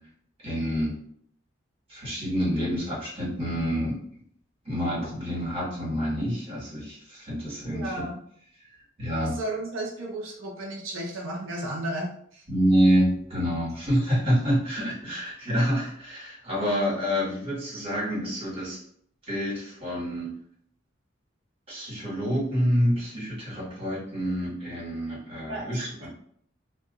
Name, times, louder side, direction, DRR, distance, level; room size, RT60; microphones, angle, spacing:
voice 1, 0.4-0.9 1.9-4.0 4.6-8.0 9.0-9.3 12.5-18.8 19.3-20.3 21.7-26.1, equal, 30° right, -7 dB, 1.5 m, -27 dB
voice 2, 7.6-8.2 9.2-12.4 25.5-26.1, right 1 dB, 85° right, -2 dB, 0.5 m, -34 dB
2.7 x 2.2 x 2.4 m, 0.64 s
head